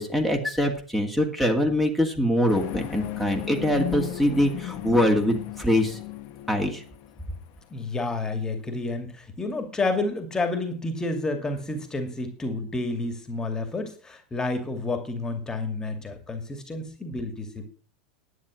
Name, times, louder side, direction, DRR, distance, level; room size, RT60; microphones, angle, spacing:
voice 1, 0.0-6.0 6.5-6.8, equal, 5° right, 1 dB, 2.4 m, -23 dB
sound 1, 2.5-7.6, left 14 dB, 50° left, 1.3 m, -35 dB
voice 2, 7.7-17.7, left 2 dB, 15° left, 7 dB, 2.5 m, -30 dB
11.0 x 9.3 x 6.4 m, 0.43 s
figure-of-eight pair, 85°, 4 cm